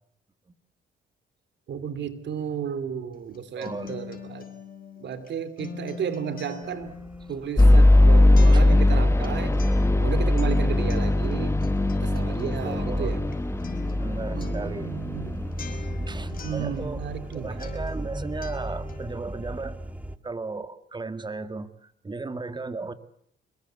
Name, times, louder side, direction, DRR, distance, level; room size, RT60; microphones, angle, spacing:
voice 1, 1.7-4.5 5.0-6.9 7.3-9.6 10.0-11.6 12.0-13.3 14.3-15.3 16.3-17.7, right 7 dB, 65° right, 12 dB, 3.1 m, -33 dB
Acoustic guitar, 3.1-17.3 17.6-19.1, left 5 dB, 45° left, 5.4 m, -42 dB
voice 2, 3.5-4.0 8.5-8.6 12.6-13.1 14.0-14.9 16.1-17.0 17.3-19.8 20.2-22.9, right 3 dB, 20° right, 12 dB, 2.0 m, -35 dB
sound 1, 6.6-20.2, right 1 dB, 5° right, 1.7 m, -37 dB
sound 2, 7.6-16.2, left 1 dB, 15° left, 1.2 m, -20 dB
25.5 x 22.0 x 8.1 m, 0.66 s
cardioid pair, 90°, 20 cm